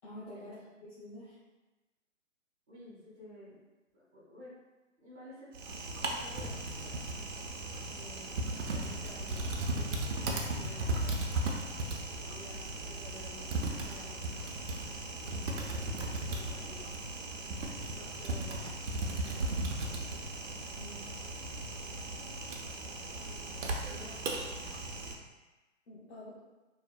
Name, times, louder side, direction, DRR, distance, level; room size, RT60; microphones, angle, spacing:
voice 1, 0.0-0.6 1.0-1.4 20.8-21.2 23.9-24.2 25.9-26.4, equal, 50° left, -10 dB, 0.7 m, -48 dB
voice 2, 2.7-3.6 3.9-4.5 5.0-5.5 6.0-6.9 7.8-11.1 12.2-14.5 15.3-16.8 17.9-18.7 19.1-19.9 23.2-23.4 23.7-24.4, left 1 dB, 10° right, -12 dB, 0.5 m, -52 dB
Typing, 5.5-25.1, right 2 dB, 70° right, 0.5 m, -37 dB
2.7 x 2.0 x 2.2 m, 1.1 s
hypercardioid pair, 150°, 39 cm